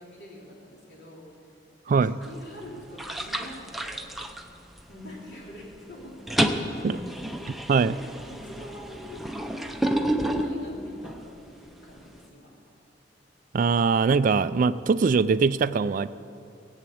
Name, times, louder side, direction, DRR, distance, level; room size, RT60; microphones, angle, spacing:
voice 1, 0.0-1.5 1.9-4.1 4.9-7.4 7.7-9.3 9.6-9.7 10.0-12.5, left 1 dB, 65° left, -4 dB, 3.9 m, -44 dB
voice 2, 1.9-2.2 6.8-7.0 7.7-8.0 13.5-16.1, right 5 dB, 45° right, 13 dB, 0.3 m, -22 dB
sound 1, 2.2-2.6 3.0-5.1 5.4-5.8 6.0-11.3, right 1 dB, ahead, 0.6 m, -30 dB
17.5 x 8.1 x 8.5 m, 2.5 s
head